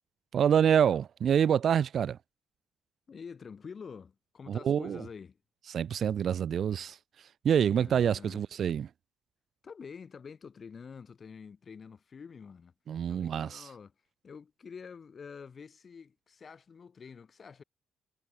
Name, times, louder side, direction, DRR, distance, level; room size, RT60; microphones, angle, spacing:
voice 1, 0.3-2.2 4.5-5.0 5.7-7.0 7.4-8.9 12.9-13.7, right 8 dB, 60° right, 0.7 m, -26 dB
voice 2, 3.1-5.4 7.8-8.4 9.6-12.7 13.1-13.9 14.2-17.6, left 6 dB, 45° left, 7.6 m, -47 dB
cardioid pair, 90°, 0 cm